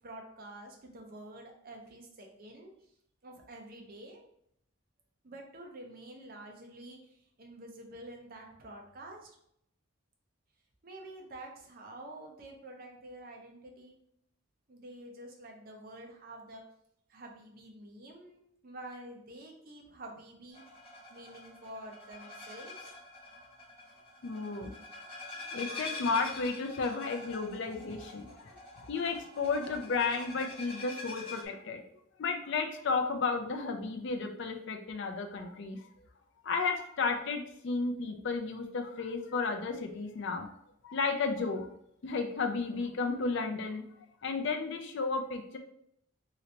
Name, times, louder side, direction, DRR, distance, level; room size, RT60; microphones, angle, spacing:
voice 1, 0.0-2.7 3.2-4.2 5.2-9.4 10.8-14.0 14.7-16.6 17.1-20.6 21.1-22.9, right 1 dB, 45° right, 1 dB, 0.6 m, -48 dB
sound 1, 20.5-31.4, left 3 dB, 25° left, 1.4 m, -45 dB
voice 2, 24.2-24.7 25.5-31.8 32.2-35.8 36.4-40.5 40.8-41.7 42.0-43.8 44.2-45.6, left 4 dB, 55° left, 4 dB, 0.4 m, -33 dB
3.1 x 2.9 x 2.8 m, 0.73 s
head